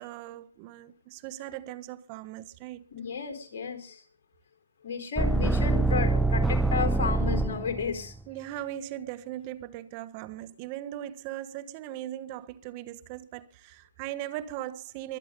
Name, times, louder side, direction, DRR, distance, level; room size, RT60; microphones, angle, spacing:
voice 1, 0.0-2.8 8.3-15.2, right 13 dB, 35° right, 1.4 m, -39 dB
voice 2, 2.9-4.0 4.8-8.1, left 6 dB, 55° left, 4.2 m, -33 dB
sound 1, 5.2-8.0, right 3 dB, ahead, 0.7 m, -25 dB
23.5 x 8.5 x 5.4 m
hypercardioid pair, 140°, 0 cm